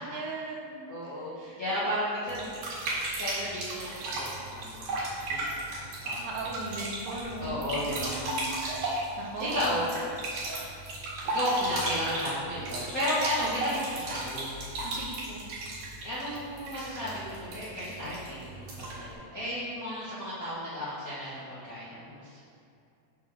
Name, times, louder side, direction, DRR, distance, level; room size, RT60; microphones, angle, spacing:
voice 1, 0.1-0.9 1.5-1.6 6.2-8.5 9.2-9.8 13.4-13.7 14.8-15.4, right 2 dB, 85° right, -2 dB, 2.9 m, -38 dB
voice 2, 0.9-2.7 3.2-5.0 5.3-6.4 7.4-8.3 9.4-9.8 11.2-14.6 16.0-22.4, equal, 80° left, -12 dB, 0.7 m, -34 dB
sound 1, 2.3-19.1, right 2 dB, 65° right, 3.3 m, -35 dB
7.3 x 3.8 x 6.1 m, 2.5 s
omnidirectional pair, 4.5 m